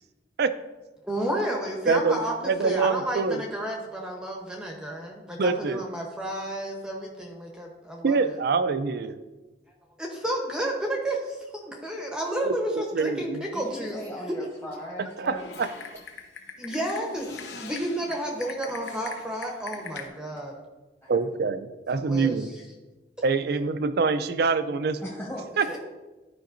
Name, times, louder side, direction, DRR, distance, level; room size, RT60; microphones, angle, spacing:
voice 1, 1.0-8.4 10.0-14.0 16.6-20.6 21.9-22.4 25.6-25.8, right 1 dB, 5° right, 0 dB, 0.9 m, -31 dB
voice 2, 1.9-2.2 2.4-3.4 5.4-5.8 8.0-9.2 12.4-13.5 15.0-15.7 21.1-22.5 23.2-25.0 25.6-25.8, right 4 dB, 60° right, 11 dB, 0.4 m, -25 dB
voice 3, 13.5-15.7 19.8-20.4 21.0-21.2 25.0-25.8, equal, 15° left, -4 dB, 1.3 m, -39 dB
Typing, 15.3-20.1, left 5 dB, 65° left, 0.9 m, -41 dB
13.0 x 5.2 x 2.6 m, 1.2 s
head